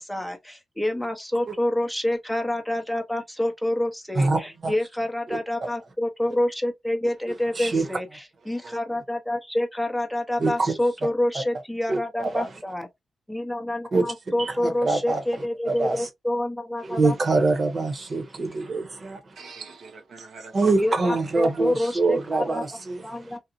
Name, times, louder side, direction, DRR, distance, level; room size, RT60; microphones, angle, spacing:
voice 1, 0.0-12.9 13.3-17.5 20.8-22.6 23.0-23.4, left 1 dB, 5° left, 0.7 m, -27 dB
voice 2, 4.1-4.7 5.3-5.4 7.3-7.8 10.4-10.7 11.9-12.5 13.9-14.0 14.4-16.1 16.8-19.3 20.5-23.4, right 3 dB, 50° right, 0.9 m, -25 dB
voice 3, 8.4-8.8 19.4-20.7 21.1-21.8, right 4 dB, 75° right, 0.5 m, -42 dB
2.8 x 2.0 x 2.6 m
cardioid pair, 55°, 0 cm